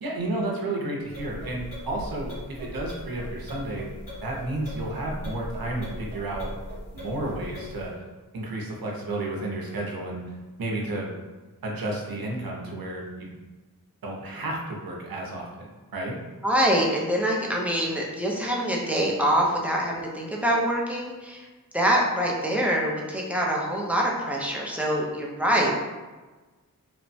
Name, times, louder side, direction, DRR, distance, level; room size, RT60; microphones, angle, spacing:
voice 1, 0.0-3.9 4.2-6.5 6.9-7.9 8.3-10.2 10.6-11.1 11.6-13.3 14.0-15.7 15.9-16.2, right 2 dB, 85° right, -1 dB, 0.6 m, -32 dB
sound 1, 1.0-8.0, equal, 65° left, 1.3 m, -39 dB
voice 2, 16.4-21.4 21.7-25.7, equal, 5° right, -3 dB, 0.4 m, -25 dB
2.9 x 2.1 x 2.6 m, 1.2 s
wide cardioid pair, 80°, 35 cm